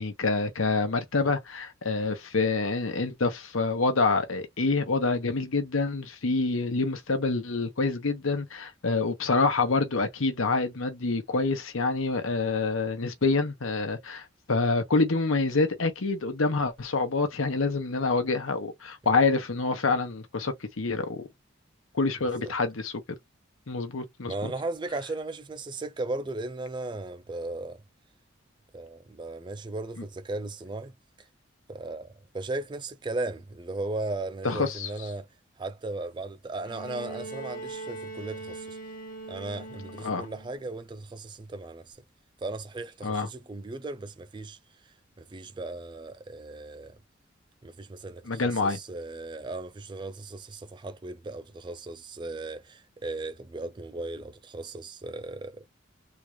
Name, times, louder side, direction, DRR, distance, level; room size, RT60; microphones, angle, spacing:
voice 1, 0.0-21.3 21.9-22.9 23.7-24.5 34.4-34.9 40.0-40.3 43.0-43.3 48.2-48.8, left 3 dB, 90° left, 1.0 m, -27 dB
voice 2, 22.2-22.5 24.2-27.8 28.7-30.9 31.7-35.3 35.6-38.8 39.3-42.0 42.4-44.6 45.2-47.0 47.6-55.7, right 2 dB, 25° right, 0.3 m, -36 dB
Bowed string instrument, 36.6-40.7 41.9-42.0, right 3 dB, 45° left, 0.9 m, -41 dB
3.8 x 2.3 x 3.2 m
head